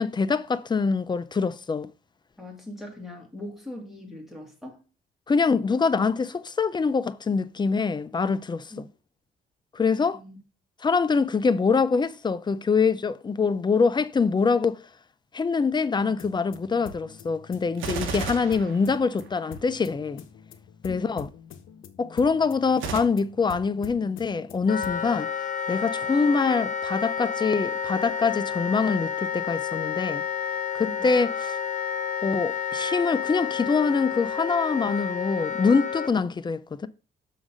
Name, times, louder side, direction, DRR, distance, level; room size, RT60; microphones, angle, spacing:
voice 1, 0.0-1.9 5.3-8.7 9.7-10.2 10.8-14.8 15.3-20.2 20.8-21.3 22.0-25.3 25.7-30.2 30.7-31.6 32.2-36.9, left 5 dB, 20° left, 0.5 m, -24 dB
voice 2, 2.4-4.8 8.7-8.8 9.9-10.4 20.9-21.3 30.8-31.1 36.1-36.2, left 1 dB, ahead, 2.7 m, -41 dB
sound 1, 16.0-25.1, left 7 dB, 80° left, 0.9 m, -46 dB
Gunshot gunfire, 17.7-19.5 22.7-23.0, right 5 dB, 80° right, 1.1 m, -33 dB
Wind instrument woodwind instrument, 24.7-36.1, left 7 dB, 40° left, 1.0 m, -30 dB
6.1 x 4.0 x 6.2 m
cardioid pair, 90°, 20 cm